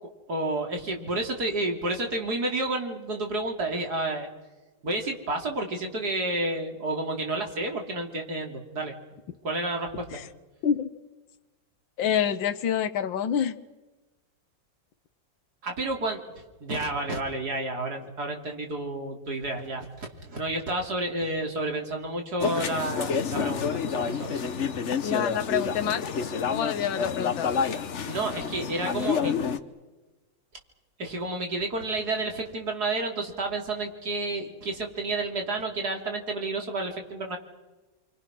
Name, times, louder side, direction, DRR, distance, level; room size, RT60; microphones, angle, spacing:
voice 1, 0.3-4.3 4.8-9.0 9.4-10.2 15.6-24.5 28.1-29.4 31.0-37.4, right 2 dB, 55° right, 2 dB, 3.9 m, -30 dB
voice 2, 12.0-13.6 25.0-26.1 26.5-27.6, left 8 dB, 90° left, 8 dB, 1.9 m, -27 dB
sound 1, 22.4-29.6, left 6 dB, 45° left, 1.2 m, -29 dB
28.5 x 25.0 x 6.2 m, 1.1 s
omnidirectional pair, 2.0 m